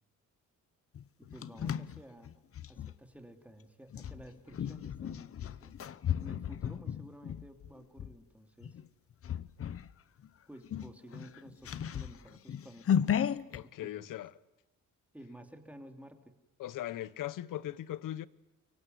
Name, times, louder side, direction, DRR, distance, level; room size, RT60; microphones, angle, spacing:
sound 1, 0.9-2.9 3.9-8.1 8.6-8.9 9.2-9.9 10.2-10.3 10.6-13.6, left 9 dB, 45° left, 0.9 m, -35 dB
voice 1, 1.2-2.3 2.7-5.8 6.2-8.8 10.5-13.2 13.6-14.1 15.1-16.3, right 1 dB, 5° right, 2.8 m, -52 dB
voice 2, 13.5-14.3 16.6-18.3, left 13 dB, 90° left, 1.1 m, -39 dB
24.5 x 23.5 x 9.4 m
cardioid pair, 125°, 31 cm